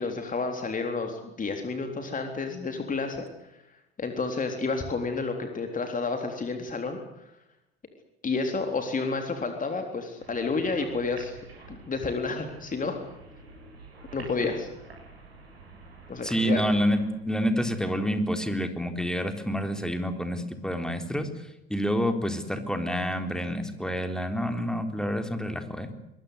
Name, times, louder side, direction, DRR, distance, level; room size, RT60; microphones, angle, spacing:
voice 1, 0.0-3.3 4.0-7.2 8.2-11.4 11.7-13.0 14.1-14.7 16.1-16.6, left 4 dB, 25° left, 5 dB, 3.8 m, -30 dB
sound 1, 10.2-17.1, right 2 dB, 80° right, 7.5 m, -47 dB
voice 2, 16.2-21.3 21.7-25.9, equal, ahead, 7 dB, 3.9 m, -28 dB
25.5 x 21.5 x 8.2 m, 0.91 s
figure-of-eight pair, 60°, 31 cm